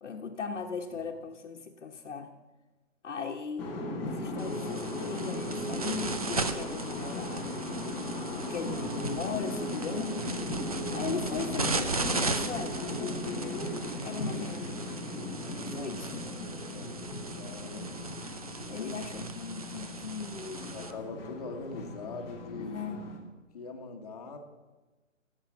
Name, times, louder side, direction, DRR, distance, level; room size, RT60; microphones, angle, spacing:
voice 1, 0.0-2.3 3.0-7.6 8.4-10.2 10.9-12.8 14.0-14.7 15.6-16.3 18.7-20.8 22.5-23.0, left 5 dB, 65° left, 0 dB, 1.3 m, -38 dB
sound 1, 3.6-23.2, left 1 dB, 5° left, 0.9 m, -37 dB
sound 2, 4.4-20.9, right 3 dB, 30° right, 0.5 m, -37 dB
voice 2, 16.7-18.0 18.8-18.9 20.7-22.8 23.5-24.4, left 4 dB, 30° left, 4 dB, 1.3 m, -42 dB
17.0 x 7.4 x 7.1 m, 1.2 s
hypercardioid pair, 165°, 39 cm